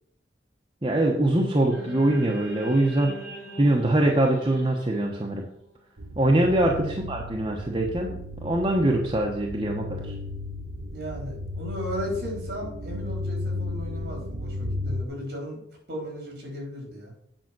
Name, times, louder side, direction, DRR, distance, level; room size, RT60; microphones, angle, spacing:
voice 1, 0.8-3.1 3.6-5.5 6.2-10.1, right 1 dB, 25° right, -1 dB, 1.0 m, -23 dB
sound 1, 1.7-6.0, right 1 dB, 45° left, 4.0 m, -40 dB
sound 2, 6.0-15.0, left 2 dB, 75° right, 0.8 m, -34 dB
voice 2, 10.9-15.6 15.9-17.1, equal, 60° right, 0 dB, 4.3 m, -35 dB
9.0 x 5.8 x 6.0 m, 0.74 s
head